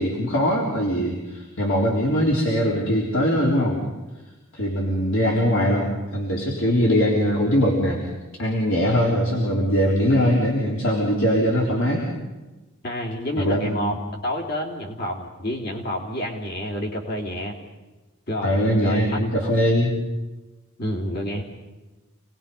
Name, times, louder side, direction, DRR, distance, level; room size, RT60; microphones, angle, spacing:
voice 1, 0.0-3.8 4.5-8.0 8.4-12.1 13.4-13.9 18.4-20.0, equal, 65° left, -3 dB, 3.9 m, -21 dB
voice 2, 12.8-13.9 14.2-17.5 18.3-19.0 19.4-19.5 20.8-21.4, left 1 dB, 50° left, 0 dB, 3.2 m, -29 dB
28.5 x 19.5 x 5.5 m, 1.2 s
head